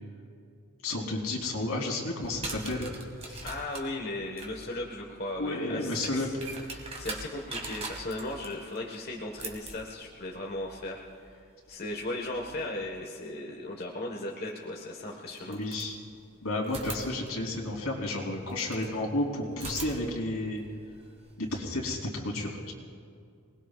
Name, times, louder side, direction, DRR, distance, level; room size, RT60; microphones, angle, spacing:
voice 1, 0.8-2.9 3.2-3.5 5.4-6.3 15.5-16.0 16.4-20.6 21.4-22.7, left 2 dB, 80° left, -1 dB, 3.3 m, -32 dB
sound 1, 2.2-13.0 14.5-14.6 15.3-16.3 16.6-18.9 19.5-21.6, right 3 dB, 30° right, 2.0 m, -43 dB
voice 2, 3.4-6.4 6.7-15.6, left 2 dB, 45° left, -1 dB, 1.4 m, -37 dB
27.5 x 20.0 x 2.5 m, 2.3 s
head